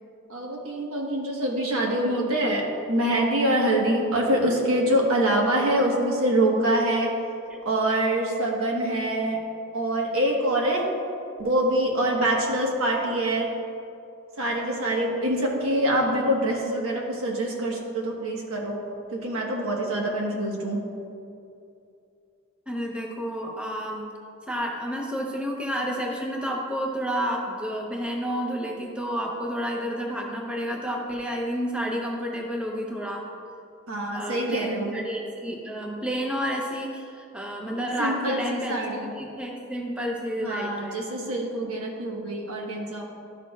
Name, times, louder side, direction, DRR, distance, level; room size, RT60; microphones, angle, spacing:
voice 1, 0.3-7.1 7.6-9.4 9.7-10.8 11.4-13.5 14.4-18.8 19.1-20.8 33.9-34.9 38.0-39.1 40.4-43.0, right 1 dB, 80° right, -1 dB, 1.3 m, -25 dB
voice 2, 22.7-24.1 24.5-33.3 34.1-38.8 39.2-41.0, equal, 5° right, -1 dB, 0.7 m, -30 dB
12.0 x 6.5 x 2.4 m, 2.6 s
head